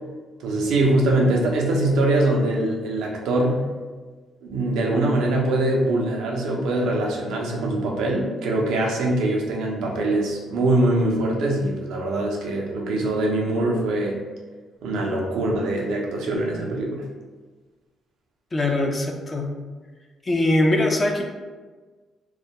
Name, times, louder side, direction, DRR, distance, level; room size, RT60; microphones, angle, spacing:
voice 1, 0.4-3.6 4.4-14.2 14.8-17.0, right 1 dB, 85° right, -1 dB, 0.5 m, -23 dB
voice 2, 18.5-19.5 20.2-21.2, left 1 dB, 30° left, 2 dB, 0.4 m, -21 dB
2.3 x 2.1 x 2.8 m, 1.4 s
cardioid pair, 90°, 0 cm